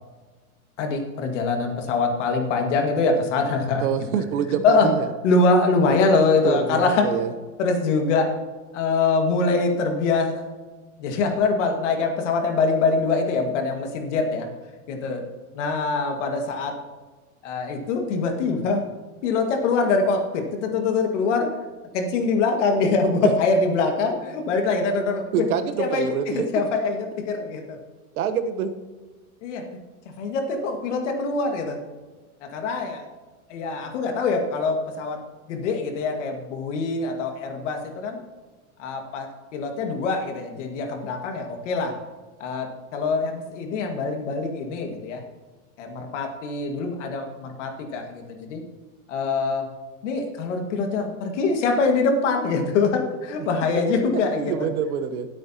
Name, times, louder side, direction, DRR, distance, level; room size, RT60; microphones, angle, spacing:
voice 1, 0.8-3.9 4.6-4.9 5.2-7.1 7.6-8.3 8.7-10.4 11.0-14.5 14.9-15.2 15.5-16.8 17.4-18.8 19.2-21.5 21.9-25.5 25.8-26.1 26.3-27.8 29.4-29.6 30.2-31.8 32.4-33.0 33.5-35.2 35.5-38.2 38.8-41.9 42.4-45.2 45.8-48.6 49.1-49.7 50.0-54.7, left 4 dB, 50° left, 3 dB, 1.9 m, -24 dB
voice 2, 3.8-5.1 6.4-7.3 23.2-23.3 25.3-26.5 28.1-28.7 54.4-55.3, right 8 dB, 75° right, 9 dB, 1.1 m, -25 dB
20.0 x 8.8 x 2.9 m, 1.3 s
supercardioid pair, 175°, 44 cm